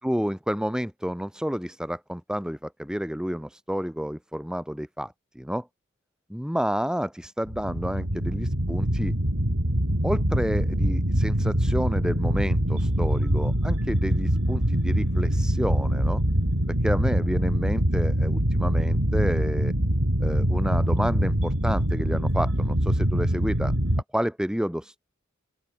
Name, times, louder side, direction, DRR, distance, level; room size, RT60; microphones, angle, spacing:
voice 1, 0.0-5.7 6.3-9.1 10.0-16.2 16.8-19.7 20.2-23.7 24.1-25.0, equal, 5° right, 6.5 m, -30 dB
sound 1, 7.5-24.0, equal, 80° right, 5.1 m, -24 dB
open air
head